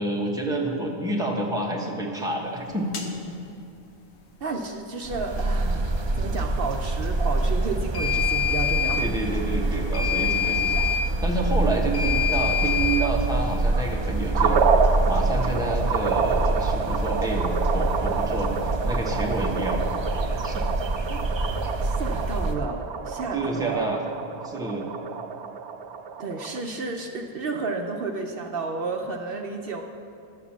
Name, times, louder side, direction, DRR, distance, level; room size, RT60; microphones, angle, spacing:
voice 1, 0.0-3.1 9.0-10.8 11.2-14.6 15.1-18.5 18.8-19.9 20.4-20.6 23.3-24.0 24.4-24.8, right 2 dB, 5° right, -1 dB, 1.1 m, -28 dB
sound 1, 2.9-3.1 7.9-9.0 9.9-11.0 11.9-13.0, left 8 dB, 90° left, 1.4 m, -25 dB
voice 2, 4.4-9.1 11.9-12.0 21.1-21.2 21.8-23.9 26.2-29.8, right 3 dB, 60° right, 3 dB, 0.9 m, -32 dB
sound 2, 5.0-22.5, right 2 dB, 30° right, 0.6 m, -26 dB
sound 3, 14.3-26.6, right 6 dB, 90° right, 1.0 m, -28 dB
11.5 x 7.2 x 7.2 m, 2.5 s
omnidirectional pair, 1.1 m